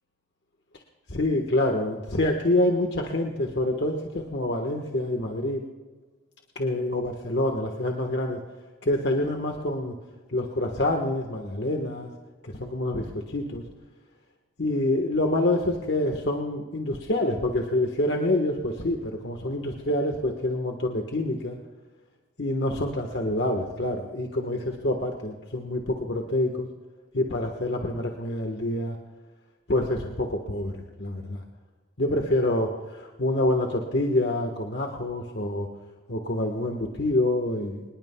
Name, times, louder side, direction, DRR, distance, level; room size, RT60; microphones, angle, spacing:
voice 1, 1.1-5.6 6.5-8.4 8.8-9.9 10.3-12.1 12.4-13.6 14.6-21.6 22.4-26.7 27.1-29.0 29.7-31.4 32.0-35.7 36.1-37.8, left 1 dB, 65° left, 2 dB, 1.4 m, -26 dB
24.5 x 21.0 x 2.3 m, 1.3 s
head